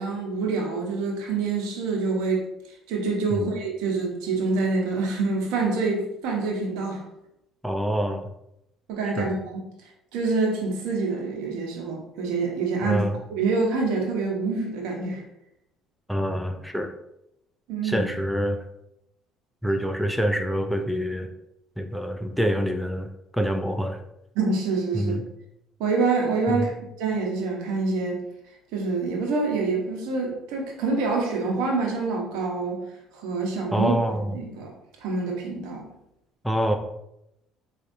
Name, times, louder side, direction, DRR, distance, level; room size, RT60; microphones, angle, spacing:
voice 1, 0.0-2.5 2.9-7.0 8.9-9.6 10.1-13.0 13.3-15.2 17.7-18.1 24.3-25.1 25.8-26.7 27.0-28.2 28.7-32.8 33.1-33.9 34.2-34.7 35.0-35.8, right 3 dB, 80° right, 0 dB, 1.0 m, -26 dB
voice 2, 7.6-8.3 9.2-9.3 12.8-13.2 16.1-16.9 17.8-18.6 19.6-21.3 21.8-24.0 24.9-25.2 26.5-26.7 33.7-34.3 36.4-36.8, equal, ahead, 6 dB, 0.4 m, -26 dB
4.4 x 2.7 x 2.6 m, 0.83 s
supercardioid pair, 95°, 0 cm